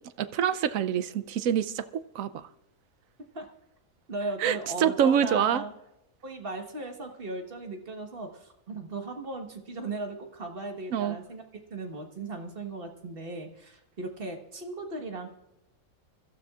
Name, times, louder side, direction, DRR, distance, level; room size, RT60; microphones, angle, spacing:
voice 1, 0.2-2.5 4.4-5.6 10.9-11.2, right 9 dB, 75° right, 14 dB, 1.0 m, -26 dB
voice 2, 4.1-5.7 6.2-11.4 11.7-15.3, right 2 dB, 40° right, 3 dB, 1.6 m, -37 dB
24.0 x 13.0 x 2.4 m, 0.88 s
omnidirectional pair, 1.5 m